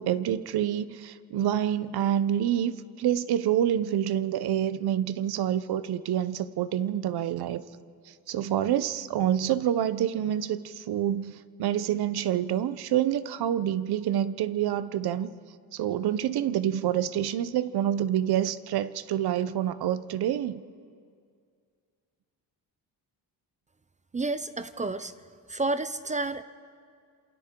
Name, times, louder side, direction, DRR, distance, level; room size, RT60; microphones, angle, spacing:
voice 1, 0.0-7.6 8.1-15.3 15.7-20.6, right 10 dB, 65° right, 14 dB, 0.8 m, -27 dB
voice 2, 24.1-25.1 25.5-26.4, right 2 dB, 20° right, 12 dB, 0.5 m, -30 dB
28.0 x 27.5 x 3.8 m, 2.2 s
cardioid pair, 145°, 40 cm